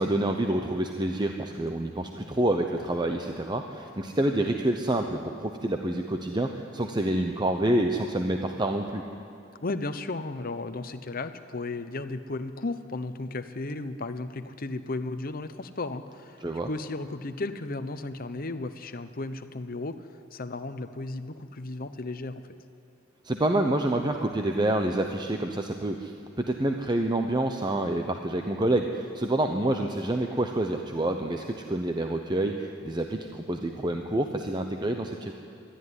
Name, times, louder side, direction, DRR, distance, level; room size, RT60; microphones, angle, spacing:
voice 1, 0.0-9.0 16.4-16.7 23.2-26.1 26.5-35.3, right 1 dB, 20° right, 4 dB, 0.9 m, -27 dB
voice 2, 9.6-20.0 20.3-22.4, left 2 dB, 45° left, 10 dB, 0.9 m, -34 dB
22.0 x 13.0 x 9.9 m, 2.6 s
head